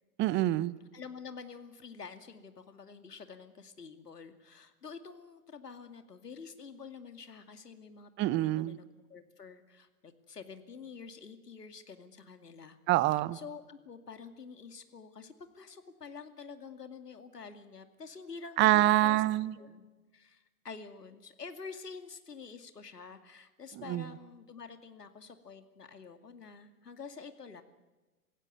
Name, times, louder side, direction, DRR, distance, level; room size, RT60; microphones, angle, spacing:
voice 1, 0.2-0.7 8.2-8.8 12.9-13.4 18.6-19.6 23.9-24.1, right 16 dB, 25° right, 19 dB, 0.8 m, -26 dB
voice 2, 0.9-12.8 13.3-19.2 19.6-19.8 20.1-27.6, left 5 dB, 85° left, 8 dB, 2.5 m, -48 dB
27.5 x 16.0 x 9.5 m, 1.2 s
figure-of-eight pair, 110°, 46 cm